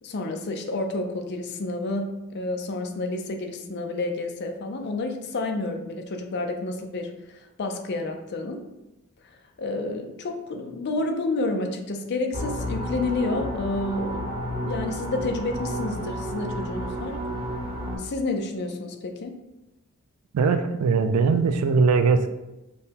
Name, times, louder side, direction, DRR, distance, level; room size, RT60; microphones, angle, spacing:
voice 1, 0.0-8.6 9.6-14.3 14.6-17.2 17.9-19.4, left 2 dB, 50° left, 5 dB, 0.4 m, -30 dB
sound 1, 12.3-18.0, equal, 20° right, 1.0 m, -31 dB
voice 2, 20.3-22.3, right 4 dB, 85° right, 9 dB, 0.4 m, -20 dB
5.3 x 2.2 x 2.8 m, 0.96 s
head